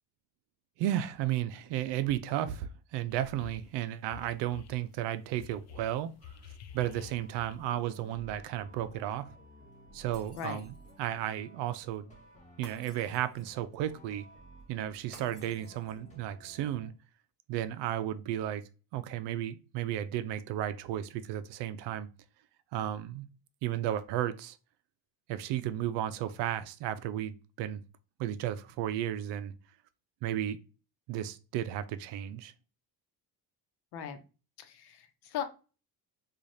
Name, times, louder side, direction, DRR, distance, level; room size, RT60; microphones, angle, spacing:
voice 1, 0.8-6.3 6.7-9.3 9.9-12.1 12.6-14.3 14.7-16.9 17.5-18.6 18.9-22.1 22.7-23.3 23.6-24.6 25.3-27.8 28.2-29.5 30.2-30.6 31.1-32.5, right 12 dB, 85° right, 0.5 m, -34 dB
sound 1, 3.1-3.7 4.1-4.8 5.4-7.9, left 8 dB, 40° left, 0.5 m, -49 dB
sound 2, 6.7-16.9, right 1 dB, 15° left, 1.6 m, -55 dB
Shatter, 10.1-11.1 12.6-13.6 15.1-16.1, equal, ahead, 2.2 m, -55 dB
voice 2, 34.6-35.4, left 8 dB, 70° left, 0.8 m, -38 dB
4.7 x 2.4 x 2.7 m
cardioid pair, 115°, 41 cm